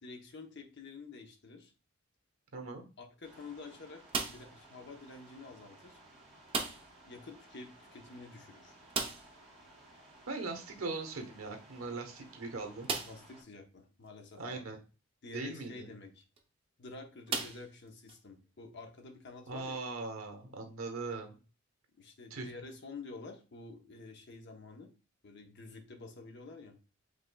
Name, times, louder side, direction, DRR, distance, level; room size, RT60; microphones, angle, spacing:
voice 1, 0.0-1.7 3.0-6.0 7.0-8.8 13.0-14.6 15.2-16.2 16.8-19.8 22.0-24.9 25.2-26.8, left 3 dB, 55° left, 4 dB, 0.8 m, -49 dB
voice 2, 2.5-2.8 10.3-12.9 14.4-14.8 15.3-15.9 19.5-21.4 22.3-22.5, right 3 dB, 85° right, 4 dB, 1.0 m, -40 dB
sound 1, 3.2-13.4, right 1 dB, 5° right, 2.4 m, -58 dB
sound 2, 4.1-4.6 6.5-7.0 7.3-7.4 7.7-7.8 8.9-9.5 11.2-11.3 11.9-12.0 12.8-13.3 14.1-14.2 16.2-16.4 17.3-18.2, right 4 dB, 25° right, 0.6 m, -37 dB
5.1 x 3.3 x 2.2 m, 0.34 s
head